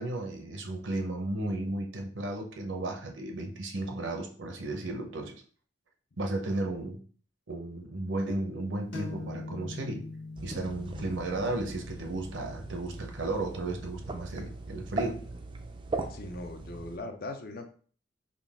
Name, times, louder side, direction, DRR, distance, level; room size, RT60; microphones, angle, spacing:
voice 1, 0.0-5.3 6.2-7.0 7.5-10.1 10.4-15.2, right 2 dB, 75° right, 3 dB, 0.7 m, -34 dB
sound 1, 8.9-16.4, left 3 dB, 65° left, 1.0 m, -45 dB
sound 2, 10.4-17.0, right 3 dB, 25° right, 0.4 m, -40 dB
voice 2, 16.1-17.7, left 2 dB, 50° left, 6 dB, 0.5 m, -40 dB
3.8 x 2.3 x 3.5 m, 0.43 s
head